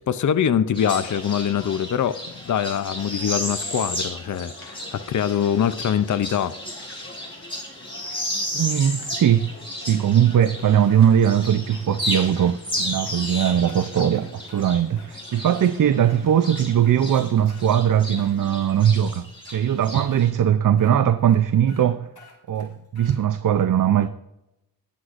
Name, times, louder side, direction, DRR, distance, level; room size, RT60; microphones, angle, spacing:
voice 1, 0.1-2.2 2.4-6.6, left 8 dB, 50° left, 0.6 m, -23 dB
sound 1, 0.7-10.9 11.2-17.3 17.6-20.3, equal, 15° left, 4.0 m, -33 dB
sound 2, 1.0-19.1, left 2 dB, 30° left, 1.3 m, -46 dB
voice 2, 8.5-9.5 9.8-22.1 22.5-24.1, right 9 dB, 55° right, 0.5 m, -20 dB
sound 3, 10.2-11.3 11.7-11.8 12.2-12.3 12.8-14.7 15.0-15.1 15.4-16.2 16.5-17.7 18.1-18.9 19.4-19.6 20.1-20.2 20.8-20.9 21.3-21.4 21.7-21.9 22.1-23.2, left 4 dB, 65° left, 2.7 m, -50 dB
19.5 x 7.8 x 2.5 m
wide cardioid pair, 75°, 39 cm